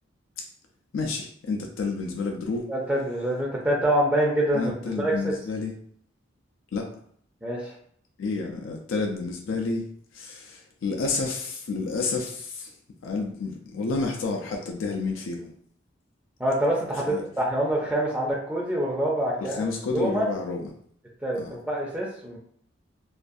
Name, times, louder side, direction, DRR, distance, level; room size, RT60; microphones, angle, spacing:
voice 1, 0.9-2.7 4.5-5.7 6.7-6.9 8.2-9.9 10.1-12.7 13.0-15.5 17.1-17.2 19.4-20.7 21.4-21.5, left 3 dB, 85° left, 1 dB, 0.4 m, -30 dB
voice 2, 2.7-4.7 5.0-5.3 7.4-7.7 16.4-20.3 21.2-22.4, right 1 dB, 5° right, -4 dB, 0.4 m, -26 dB
2.4 x 2.3 x 2.5 m, 0.62 s
head